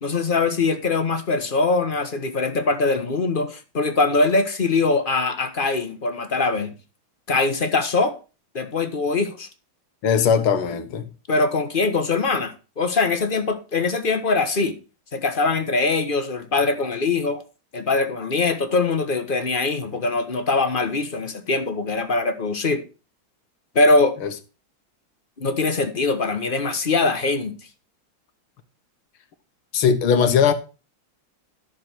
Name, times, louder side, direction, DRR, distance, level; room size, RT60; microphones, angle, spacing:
voice 1, 0.0-6.7 7.3-8.1 8.5-9.5 11.3-14.8 15.1-17.4 17.7-22.8 23.7-24.1 25.4-27.5, left 3 dB, 30° left, 1.1 m, -22 dB
voice 2, 10.0-11.1 24.2-24.3 29.7-30.5, left 7 dB, 85° left, 2.0 m, -19 dB
11.5 x 6.6 x 4.5 m
omnidirectional pair, 2.3 m